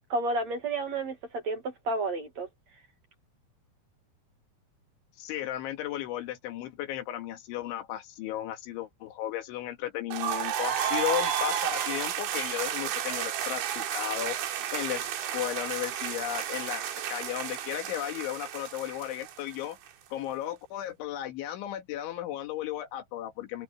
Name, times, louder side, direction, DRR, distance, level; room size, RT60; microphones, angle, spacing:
voice 1, 0.1-2.5, right 2 dB, 50° right, 2.3 m, -31 dB
voice 2, 5.2-19.8 20.1-23.6, left 12 dB, 85° left, 4.3 m, -35 dB
sound 1, 10.1-19.9, right 10 dB, 80° right, 4.4 m, -32 dB
omnidirectional pair, 5.3 m